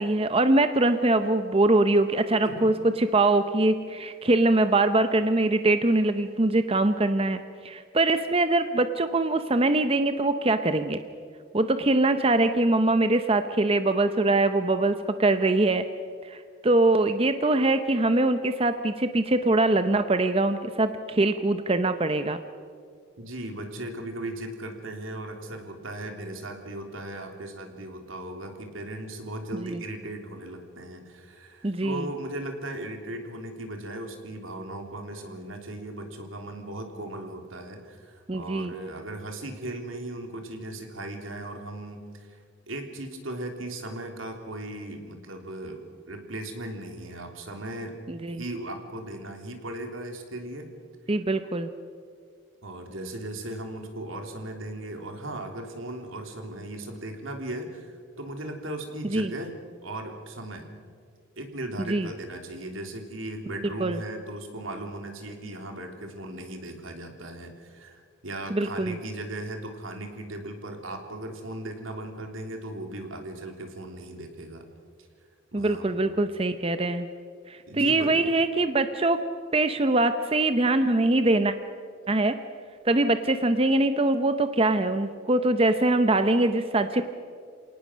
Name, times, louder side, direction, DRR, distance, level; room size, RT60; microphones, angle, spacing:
voice 1, 0.0-11.0 11.5-15.9 16.2-22.4 29.6-29.8 31.6-32.1 38.3-38.7 48.1-48.4 51.1-51.7 59.1-59.3 61.9-62.1 63.6-64.0 68.5-69.0 75.5-77.1 77.5-79.2 79.5-81.5 82.1-82.4 82.8-87.0, right 2 dB, 30° right, 9 dB, 0.7 m, -23 dB
voice 2, 23.2-42.4 42.7-48.0 48.3-50.7 52.6-59.6 59.8-60.7 61.4-74.6 75.5-75.9 77.7-78.2, right 1 dB, 85° right, 4 dB, 3.3 m, -37 dB
27.5 x 18.5 x 6.3 m, 2.1 s
head